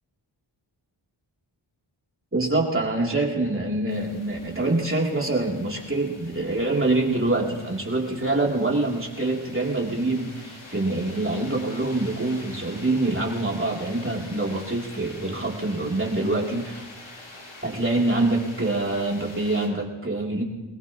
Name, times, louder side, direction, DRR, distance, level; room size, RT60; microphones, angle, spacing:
voice 1, 2.3-16.8 17.6-20.4, right 2 dB, 25° right, -2 dB, 3.5 m, -25 dB
sound 1, 3.9-19.7, left 2 dB, 75° left, 4.0 m, -45 dB
22.0 x 19.5 x 3.2 m, 1.1 s
wide cardioid pair, 60°, 48 cm